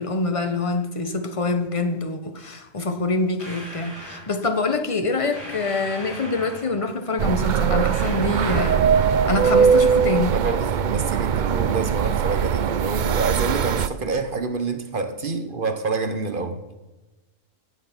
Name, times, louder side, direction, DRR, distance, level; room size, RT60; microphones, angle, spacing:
voice 1, 0.0-10.4, left 3 dB, 25° left, 1.1 m, -25 dB
sound 1, 3.4-4.3 5.3-6.9 7.9-9.0, equal, 55° left, 4.8 m, -39 dB
sound 2, 7.2-13.9, right 7 dB, 60° right, 0.5 m, -21 dB
voice 2, 10.3-16.6, right 4 dB, 45° right, 1.2 m, -27 dB
15.5 x 7.8 x 6.0 m
omnidirectional pair, 1.4 m